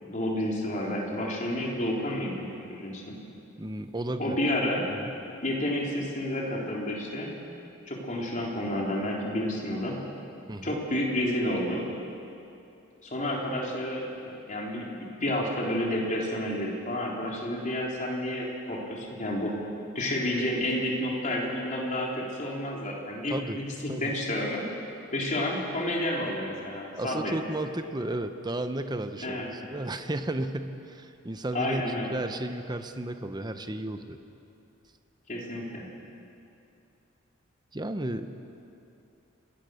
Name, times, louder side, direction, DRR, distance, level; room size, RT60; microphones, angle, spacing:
voice 1, 0.0-3.2 4.2-4.8 5.4-7.3 7.9-10.0 10.6-11.9 13.0-19.5 19.9-24.6 25.1-27.3 29.2-29.5 31.5-32.1 35.3-35.8, left 1 dB, 40° left, -2 dB, 3.8 m, -30 dB
voice 2, 3.6-4.4 4.9-5.1 10.5-10.8 23.3-23.6 23.9-24.1 27.0-31.8 32.1-34.2 37.7-38.3, right 1 dB, 20° right, 8 dB, 0.9 m, -33 dB
27.5 x 19.0 x 6.5 m, 2.7 s
head